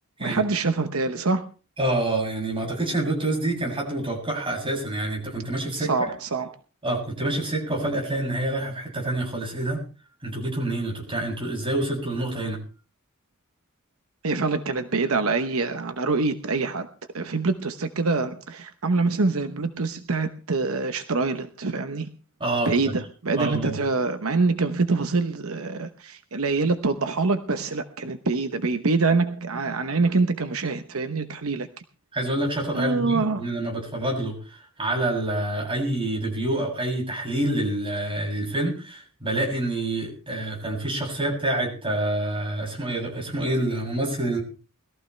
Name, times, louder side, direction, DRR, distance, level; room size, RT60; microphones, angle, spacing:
voice 1, 0.2-1.4 5.8-6.6 14.2-16.9 17.1-22.1 22.6-31.7 32.7-33.4, right 3 dB, 75° right, 9 dB, 1.0 m, -25 dB
voice 2, 1.8-6.1 6.8-9.8 10.2-12.6 22.4-22.7 23.4-23.8 32.1-44.4, right 1 dB, 25° right, -1 dB, 7.3 m, -27 dB
21.0 x 14.5 x 3.3 m, 0.36 s
head